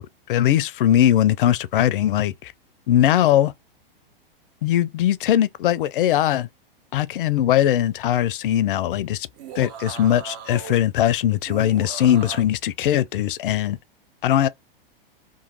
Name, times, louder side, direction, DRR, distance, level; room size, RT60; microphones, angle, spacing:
voice 1, 0.0-2.5 2.9-3.5 4.6-6.5 6.9-9.3 9.6-13.8 14.2-14.5, left 11 dB, 65° left, 0.4 m, -20 dB
sound 1, 9.2-10.8 11.5-12.4, right 8 dB, 45° right, 0.7 m, -37 dB
3.0 x 2.1 x 2.8 m
hypercardioid pair, 105°, 29 cm